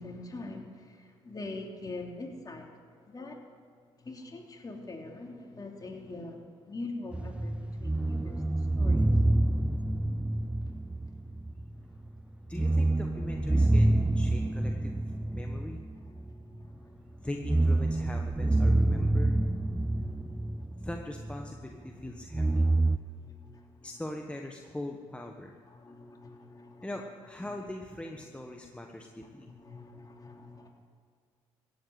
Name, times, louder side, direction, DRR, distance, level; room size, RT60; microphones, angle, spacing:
voice 1, 0.0-2.7 3.1-3.4 4.0-6.4 6.7-9.1 16.2-17.1 19.8-20.8 22.8-23.8 25.7-26.8 29.4-30.7, left 2 dB, 30° left, 1 dB, 3.2 m, -44 dB
sound 1, 7.1-11.8 12.1-12.2 12.5-16.7 17.3-21.6 22.3-23.0, right 2 dB, 10° right, 0.5 m, -27 dB
voice 2, 12.5-14.9 15.3-15.8 17.2-19.4 20.8-22.7 23.8-25.5 26.8-29.5, left 1 dB, 10° left, 2 dB, 1.3 m, -41 dB
15.5 x 8.3 x 9.2 m, 2.1 s
supercardioid pair, 65°, 13 cm